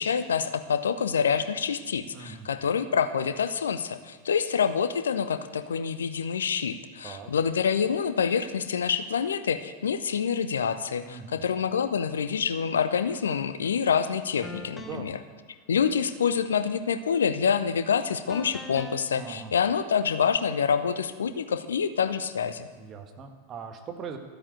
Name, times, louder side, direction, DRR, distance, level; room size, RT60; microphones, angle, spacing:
voice 1, 0.0-15.2 15.7-22.7, left 7 dB, 65° left, 11 dB, 0.8 m, -27 dB
voice 2, 2.1-2.5 7.0-7.3 11.0-11.4 14.8-15.2 19.2-19.5 22.8-24.2, right 6 dB, 30° right, 5 dB, 1.7 m, -41 dB
sound 1, 13.6-13.8 14.4-15.2 18.3-19.0, left 2 dB, 10° left, 1.3 m, -42 dB
13.0 x 8.9 x 8.1 m, 1.5 s
figure-of-eight pair, 90°, 0 cm